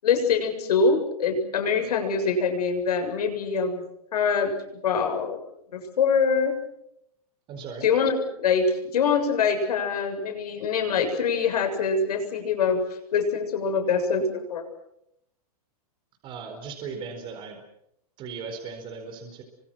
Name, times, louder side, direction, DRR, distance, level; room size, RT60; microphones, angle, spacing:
voice 1, 0.0-3.8 4.1-4.5 4.8-5.4 5.7-6.6 7.8-12.8 13.1-14.6, left 5 dB, 85° left, 6 dB, 7.2 m, -24 dB
voice 2, 7.5-7.9 16.2-17.6 18.2-19.4, right 5 dB, 25° right, 4 dB, 4.4 m, -37 dB
29.5 x 24.5 x 6.3 m, 0.76 s
supercardioid pair, 165°, 19 cm